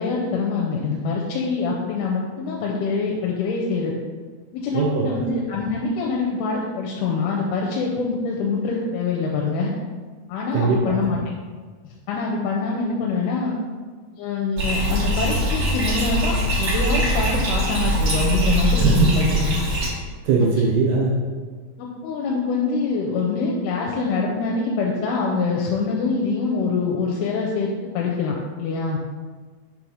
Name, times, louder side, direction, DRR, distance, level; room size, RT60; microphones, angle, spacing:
voice 1, 0.0-3.9 4.5-9.7 10.3-11.2 12.1-13.6 14.2-19.6 21.8-29.0, left 4 dB, 90° left, -2 dB, 2.6 m, -25 dB
voice 2, 4.7-5.1 10.5-11.0 18.8-19.1 19.5-19.6 20.2-21.2, right 4 dB, 75° right, -2 dB, 2.0 m, -20 dB
Bathtub (filling or washing), 14.6-19.9, right 1 dB, 50° right, 1.5 m, -22 dB
6.2 x 3.1 x 5.4 m, 1.5 s
omnidirectional pair, 4.3 m